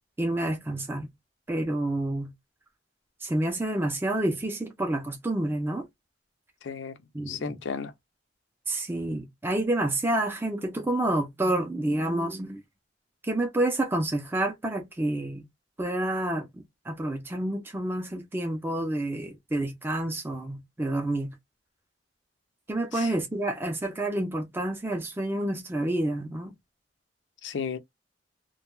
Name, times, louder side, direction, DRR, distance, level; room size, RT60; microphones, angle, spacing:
voice 1, 0.2-1.1 1.5-2.3 3.2-5.9 7.1-7.6 8.7-12.6 13.2-15.4 15.8-21.3 22.7-26.5, right 1 dB, 10° right, 0.4 m, -29 dB
voice 2, 6.6-6.9 7.3-7.9 22.9-23.1 27.4-27.8, left 6 dB, 80° left, 0.4 m, -33 dB
2.2 x 2.2 x 2.9 m
head